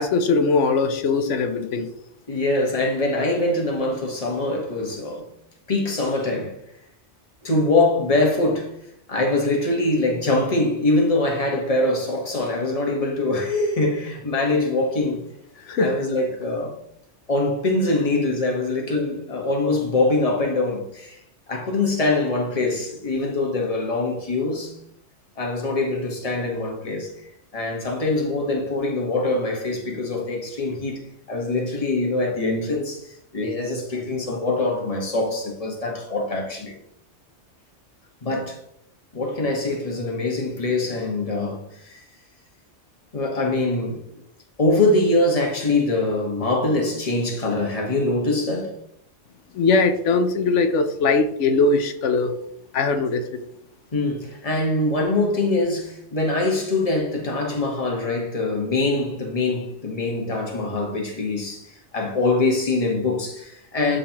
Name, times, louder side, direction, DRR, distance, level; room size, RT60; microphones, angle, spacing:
voice 1, 0.0-1.9 15.7-15.9 49.5-52.3 52.7-53.2, left 3 dB, 85° left, 1.0 m, -20 dB
voice 2, 2.3-5.3 5.7-6.6 7.4-8.7 9.1-15.2 15.8-16.7 17.3-21.2 21.5-24.8 25.4-27.1 27.5-31.0 31.3-36.7 38.2-38.6 39.1-42.0 43.1-44.0 44.6-48.7 53.9-64.0, left 2 dB, 30° left, 1.3 m, -23 dB
12.0 x 3.9 x 2.9 m
omnidirectional pair, 1.2 m